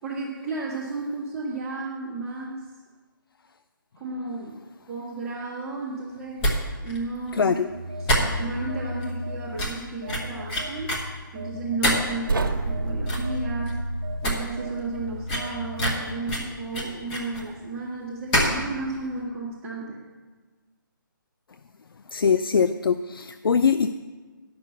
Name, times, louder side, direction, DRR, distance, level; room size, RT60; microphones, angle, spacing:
voice 1, 0.0-2.7 4.0-4.6 4.9-6.4 6.8-7.5 8.0-10.9 11.3-13.8 14.2-20.0, right 3 dB, 10° right, -7 dB, 1.1 m, -33 dB
sound 1, 6.4-6.5 6.9-7.0 7.3-7.4 8.1-8.7 9.0-9.1 9.6-9.8 10.1-11.0 11.8-12.2 12.7-12.8 13.1-13.4 13.7-13.8 14.1-14.4 14.6-14.7 15.3-17.4 18.3-18.6 18.9-19.0, equal, 20° left, 1.4 m, -25 dB
voice 2, 7.3-7.7 22.1-23.9, left 6 dB, 85° left, 11 dB, 0.4 m, -22 dB
Telephone, 7.7-9.7 10.0-15.9, equal, 40° right, 0.7 m, -35 dB
sound 2, 12.3-15.3, right 4 dB, 70° right, 1.1 m, -30 dB
10.5 x 6.0 x 7.1 m, 1.4 s
hypercardioid pair, 160°, 12 cm